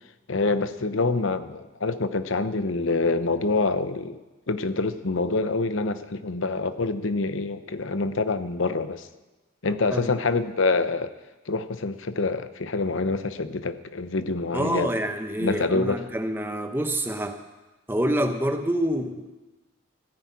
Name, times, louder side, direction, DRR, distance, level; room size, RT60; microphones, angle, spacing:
voice 1, 0.3-4.2 4.5-9.1 9.6-11.1 11.5-14.9 15.4-16.1, left 3 dB, 70° left, 12 dB, 0.8 m, -26 dB
voice 2, 14.5-17.4 17.9-19.3, right 1 dB, 10° right, 6 dB, 1.0 m, -27 dB
15.5 x 9.7 x 8.4 m, 1.1 s
head